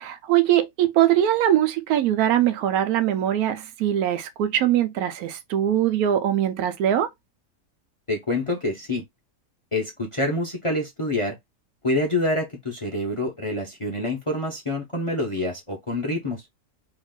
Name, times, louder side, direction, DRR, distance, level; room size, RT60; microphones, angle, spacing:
voice 1, 0.0-7.1, right 11 dB, 80° right, 1.1 m, -22 dB
voice 2, 8.1-9.0 9.7-11.4 11.8-16.4, left 1 dB, 30° left, 0.6 m, -26 dB
3.0 x 2.5 x 3.6 m
omnidirectional pair, 1.6 m